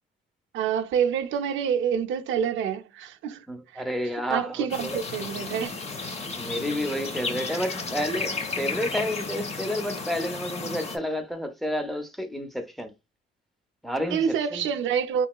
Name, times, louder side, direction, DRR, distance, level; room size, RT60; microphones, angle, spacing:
voice 1, 0.5-3.5 3.7-3.8 4.3-5.8 14.1-15.3, right 7 dB, 75° right, 0.5 m, -27 dB
voice 2, 3.5-5.0 6.4-12.9 13.8-14.7, equal, ahead, 0.6 m, -30 dB
sound 1, 4.7-11.0, left 4 dB, 30° left, 0.7 m, -33 dB
3.0 x 2.8 x 2.3 m
cardioid pair, 90°, 20 cm